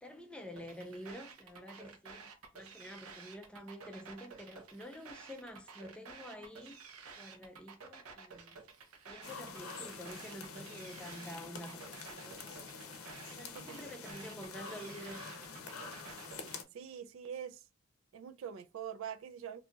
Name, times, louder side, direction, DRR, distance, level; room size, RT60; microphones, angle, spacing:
voice 1, 0.0-6.8 7.2-8.6 9.1-12.4 13.3-15.7, equal, 5° left, 0.4 m, -49 dB
sound 1, 0.6-16.6, right 5 dB, 80° right, 0.7 m, -52 dB
sound 2, 9.2-16.6, left 5 dB, 80° left, 0.6 m, -47 dB
voice 2, 13.5-13.9 16.7-17.6 18.1-19.6, right 8 dB, 65° right, 0.3 m, -44 dB
2.7 x 2.3 x 3.8 m
head